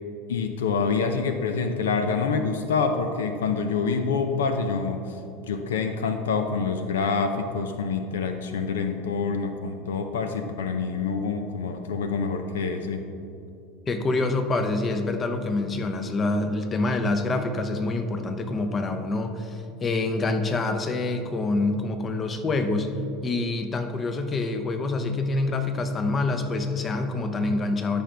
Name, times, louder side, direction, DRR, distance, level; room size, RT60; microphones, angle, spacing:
voice 1, 0.3-13.1, left 5 dB, 85° left, 7 dB, 0.5 m, -26 dB
voice 2, 13.9-22.9 23.2-28.0, left 2 dB, 30° left, 7 dB, 0.7 m, -26 dB
13.0 x 5.2 x 3.4 m, 2.7 s
hypercardioid pair, 95°, 0 cm